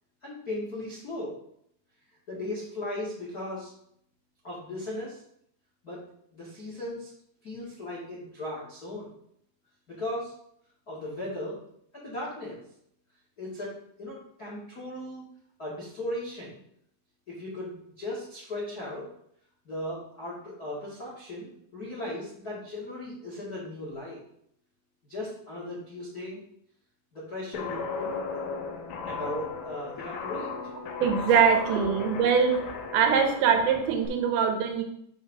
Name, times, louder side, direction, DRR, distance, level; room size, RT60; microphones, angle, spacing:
voice 1, 0.2-1.3 2.3-3.7 4.4-5.2 5.8-6.0 6.3-7.1 7.4-9.1 9.9-10.3 10.9-11.6 11.9-12.6 13.4-13.7 14.0-15.2 15.6-16.6 17.3-19.0 19.6-24.2 25.1-26.4 27.1-28.2 29.1-30.5 31.7-31.9, left 1 dB, 55° left, -5 dB, 1.0 m, -37 dB
Guitar, 27.5-34.1, left 5 dB, 70° left, 2.3 m, -36 dB
voice 2, 31.0-32.6 32.9-34.8, right 6 dB, 85° right, 4 dB, 3.2 m, -23 dB
8.2 x 3.5 x 6.3 m, 0.70 s
omnidirectional pair, 5.2 m